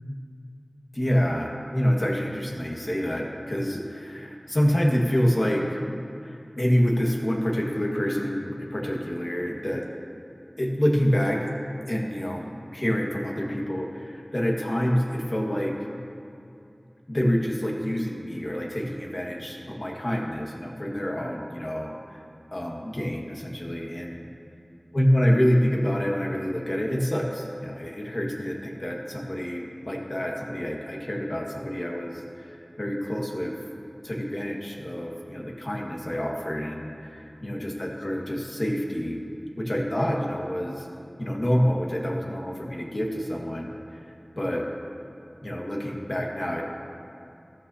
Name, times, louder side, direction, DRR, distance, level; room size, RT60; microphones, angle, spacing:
voice 1, 0.9-5.8 6.2-9.9 10.6-11.5 11.9-15.7 17.1-22.2 22.5-24.3 24.9-33.6 34.0-39.2 39.6-40.9 41.2-44.0 44.4-44.7 45.4-46.6, equal, 45° left, -1 dB, 1.7 m, -27 dB
14.0 x 13.0 x 2.8 m, 2.7 s
wide cardioid pair, 45°, 0 cm